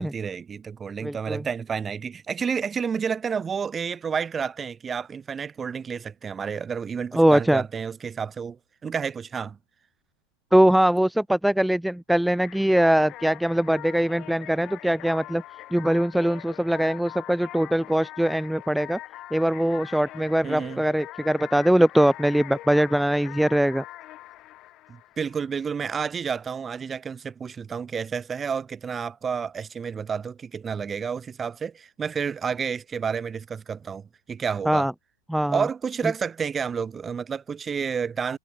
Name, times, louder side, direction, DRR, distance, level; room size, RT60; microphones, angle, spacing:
voice 1, 0.0-9.6 20.4-20.8 24.9-34.9 35.5-38.4, right 6 dB, 20° right, 3.5 m, -30 dB
voice 2, 1.0-1.4 7.1-7.6 10.5-15.4 15.7-19.0 19.3-23.8 34.6-34.9 35.3-35.6, right 1 dB, ahead, 1.4 m, -22 dB
sound 1, 12.3-25.8, left 15 dB, 35° left, 6.7 m, -43 dB
hypercardioid pair, 130°, 0 cm